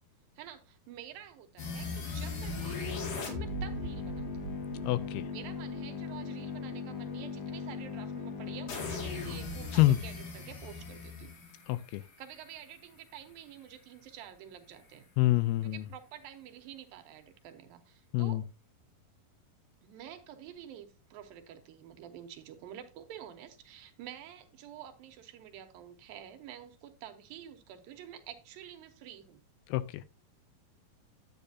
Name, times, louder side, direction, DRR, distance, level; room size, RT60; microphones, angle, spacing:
voice 1, 0.4-4.6 5.3-11.4 11.9-15.1 15.6-18.4 19.8-29.4, right 10 dB, 75° right, 2.5 m, -49 dB
sound 1, 1.6-12.5, left 4 dB, 65° left, 3.8 m, -38 dB
voice 2, 4.8-5.3 9.7-10.0 11.7-12.0 15.2-15.8 18.1-18.4 29.7-30.0, left 16 dB, 90° left, 2.7 m, -27 dB
10.5 x 8.8 x 2.8 m
omnidirectional pair, 4.5 m